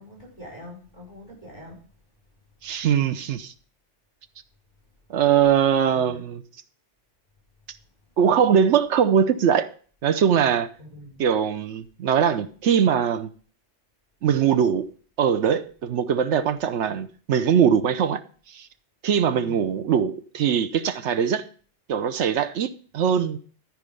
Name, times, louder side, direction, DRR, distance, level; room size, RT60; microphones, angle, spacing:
voice 1, 0.0-1.8 5.9-6.2 10.8-11.2 19.3-19.6, left 1 dB, 40° left, 5.4 m, -44 dB
voice 2, 2.6-3.5 5.1-6.4 8.2-9.7 10.0-10.7 11.2-13.3 14.2-14.9 15.2-18.2 18.5-18.7 19.0-21.4 21.9-23.4, right 8 dB, 90° right, 1.1 m, -21 dB
13.5 x 5.1 x 5.3 m
omnidirectional pair, 1.2 m